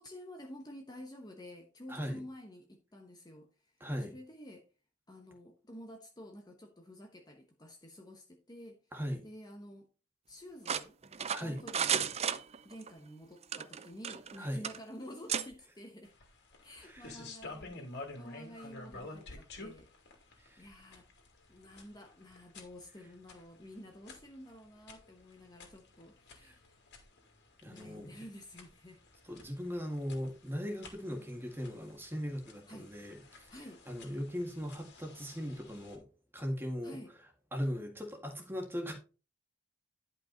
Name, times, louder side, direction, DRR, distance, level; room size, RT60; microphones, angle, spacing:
voice 1, 0.0-3.8 4.1-4.7 5.1-8.9 9.2-9.9 10.3-12.2 12.6-16.2 16.6-21.1 21.5-26.8 27.6-29.0 32.7-32.9 33.5-33.8 36.8-37.1, equal, 20° left, 1.0 m, -50 dB
voice 2, 1.9-2.2 3.8-4.1 8.9-9.2 11.3-11.6 14.4-14.6 16.8-17.1 20.4-20.7 27.6-28.1 29.2-33.6 33.9-36.1 36.3-37.0 37.5-38.9, equal, 10° right, 1.9 m, -39 dB
sound 1, 10.7-12.9 13.4-14.4 14.6-14.8 15.3-15.5, right 8 dB, 30° right, 0.5 m, -33 dB
sound 2, 16.0-35.9, left 2 dB, 50° left, 2.6 m, -52 dB
11.0 x 5.4 x 3.9 m
head